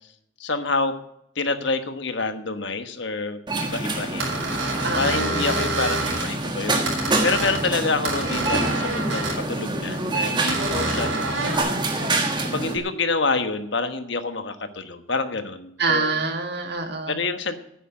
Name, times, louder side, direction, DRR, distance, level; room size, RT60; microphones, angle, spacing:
voice 1, 0.4-0.9 1.3-4.5 5.0-11.2 12.4-16.1 17.1-17.6, left 3 dB, 60° left, 9 dB, 1.2 m, -27 dB
sound 1, 3.5-12.8, right 2 dB, 20° right, 1.5 m, -26 dB
sound 2, 4.2-6.3 6.9-7.7 8.1-9.4 10.5-11.6, right 2 dB, 75° right, 4.8 m, -28 dB
voice 2, 4.8-5.4 11.4-12.1 15.8-17.2, right 4 dB, 55° right, 4 dB, 2.2 m, -27 dB
9.4 x 9.3 x 8.6 m, 0.77 s
head